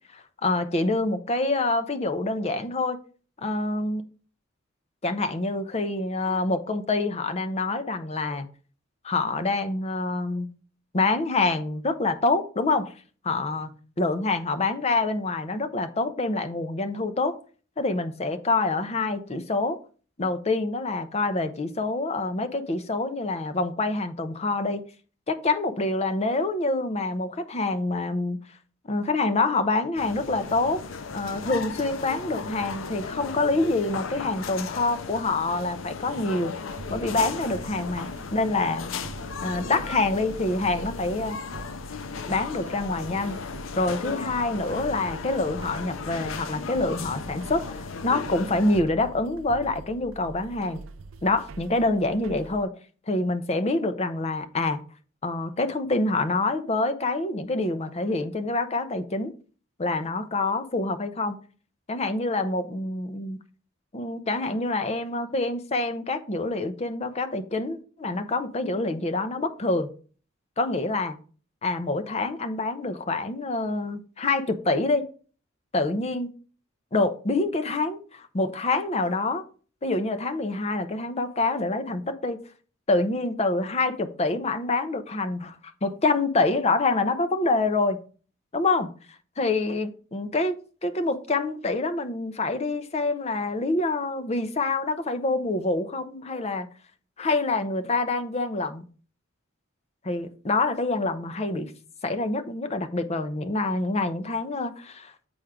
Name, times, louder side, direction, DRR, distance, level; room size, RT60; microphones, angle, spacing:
voice 1, 0.1-3.0 3.4-4.0 5.0-8.5 9.0-10.5 10.9-12.9 13.2-13.7 14.0-17.4 17.8-19.8 20.2-24.8 25.3-28.4 28.9-30.8 31.1-36.5 36.9-38.9 39.4-41.4 42.3-43.4 43.8-50.8 51.2-52.7 53.1-54.8 55.2-59.3 59.8-61.4 61.9-63.4 63.9-69.9 70.6-71.2 71.6-75.1 75.7-76.3 76.9-79.4 79.8-82.4 82.9-88.0 88.5-88.9 89.4-90.6 90.8-96.7 97.2-98.8 100.1-101.7 102.0-105.1, left 2 dB, 35° left, 0.7 m, -26 dB
sound 1, 30.0-48.8, left 5 dB, 70° left, 0.5 m, -36 dB
sound 2, 36.7-52.6, right 3 dB, 75° right, 0.5 m, -44 dB
7.9 x 4.5 x 3.7 m
head